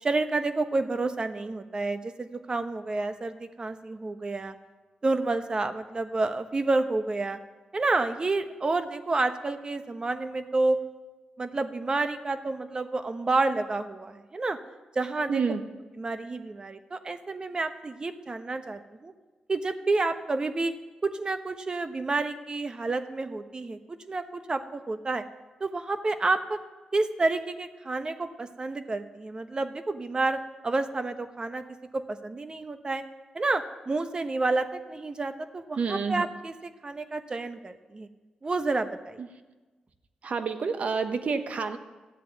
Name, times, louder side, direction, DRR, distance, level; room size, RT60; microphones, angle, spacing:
voice 1, 0.0-4.5 5.0-7.4 7.7-10.8 11.4-14.6 14.9-15.4 16.0-19.1 19.5-20.7 21.0-25.2 25.6-26.6 26.9-31.6 31.9-33.0 33.3-38.1 38.4-39.2, right 3 dB, 35° right, 9 dB, 1.0 m, -29 dB
voice 2, 15.3-15.6 35.8-36.3 39.2-39.3 40.2-41.8, right 5 dB, 60° right, 8 dB, 1.1 m, -28 dB
14.5 x 7.5 x 9.3 m, 1.2 s
cardioid pair, 85°, 3 cm